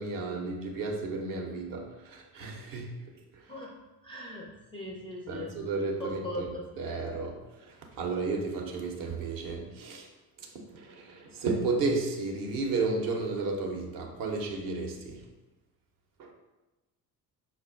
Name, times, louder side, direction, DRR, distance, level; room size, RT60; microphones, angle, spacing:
voice 1, 0.0-2.9 5.3-6.5 6.8-10.1 10.7-15.2 16.2-16.3, right 3 dB, 45° right, 2 dB, 0.7 m, -33 dB
voice 2, 4.0-5.5 6.0-6.7, left 1 dB, 10° left, -2 dB, 0.3 m, -39 dB
5.2 x 2.1 x 2.4 m, 1.1 s
figure-of-eight pair, 50°, 47 cm